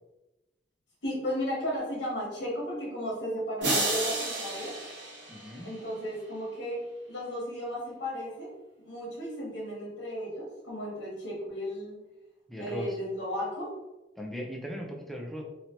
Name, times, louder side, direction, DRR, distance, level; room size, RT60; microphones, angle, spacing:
voice 1, 1.0-4.8 5.6-6.8 7.1-8.5 8.8-12.0 12.6-13.7, equal, 75° left, -4 dB, 1.1 m, -34 dB
sound 1, 3.6-6.0, right 2 dB, 85° right, 1.0 m, -31 dB
voice 2, 5.3-5.7 12.5-13.0 14.2-15.4, equal, ahead, 0 dB, 0.4 m, -38 dB
3.1 x 2.7 x 2.9 m, 1.0 s
head